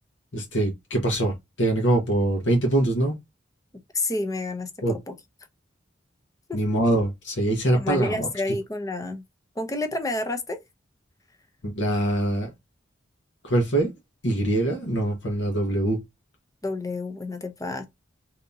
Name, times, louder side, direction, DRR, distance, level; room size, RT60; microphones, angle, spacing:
voice 1, 0.3-3.1 4.8-4.9 6.5-8.3 11.6-12.5 13.4-13.9 14.2-16.0, right 1 dB, 70° left, 1.0 m, -23 dB
voice 2, 3.9-5.1 6.5-6.6 7.7-9.2 9.6-10.6 16.6-17.8, left 2 dB, 20° left, 0.6 m, -29 dB
3.5 x 2.8 x 2.6 m
head